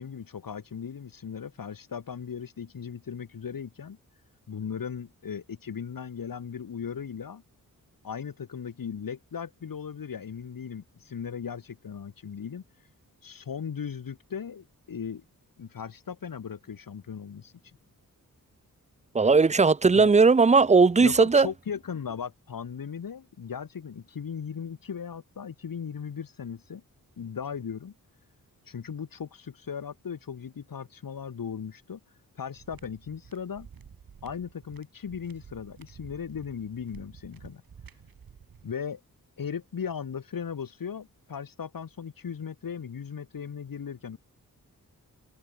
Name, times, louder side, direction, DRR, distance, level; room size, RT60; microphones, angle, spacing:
voice 1, 0.0-4.0 4.5-7.4 8.0-12.6 13.2-15.2 15.6-17.5 19.9-20.1 21.0-26.8 27.2-27.9 28.7-32.0 32.4-33.7 34.2-37.6 38.6-39.0 39.4-44.2, left 7 dB, 75° left, 2.9 m, -37 dB
voice 2, 19.1-21.5, right 4 dB, 20° right, 0.5 m, -18 dB
sound 1, 32.6-38.7, right 7 dB, 85° right, 6.5 m, -51 dB
wide cardioid pair, 160°, 34 cm